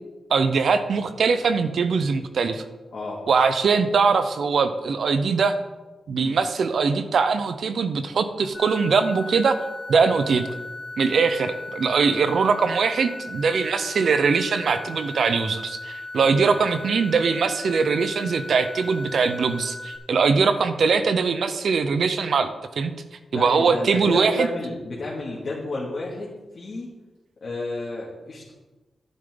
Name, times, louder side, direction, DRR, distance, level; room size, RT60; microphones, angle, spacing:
voice 1, 0.3-2.6 3.3-5.6 6.1-9.6 9.9-10.5 11.0-22.9 23.3-24.5, right 5 dB, 70° right, 9 dB, 0.8 m, -22 dB
sound 1, 8.5-20.0, left 2 dB, 30° left, 2.2 m, -37 dB
voice 2, 16.2-16.6 23.3-26.9 27.4-28.5, left 2 dB, 50° left, -6 dB, 2.5 m, -32 dB
11.0 x 10.0 x 3.9 m, 1.2 s
wide cardioid pair, 140°, 0 cm